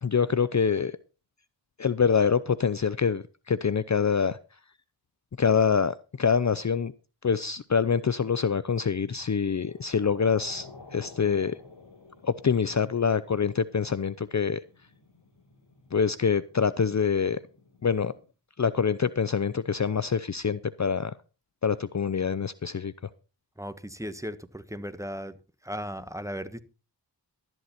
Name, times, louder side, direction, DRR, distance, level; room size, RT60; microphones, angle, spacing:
voice 1, 0.0-0.9 1.8-4.4 5.4-6.9 7.2-11.6 12.2-14.6 15.9-17.4 17.8-18.1 18.6-21.1 21.6-22.9, left 6 dB, 40° left, 0.6 m, -25 dB
sound 1, 9.5-18.3, left 3 dB, 85° left, 7.5 m, -52 dB
voice 2, 23.6-25.4 25.6-26.6, equal, 5° right, 1.3 m, -36 dB
12.5 x 11.0 x 4.3 m
wide cardioid pair, 65°, 42 cm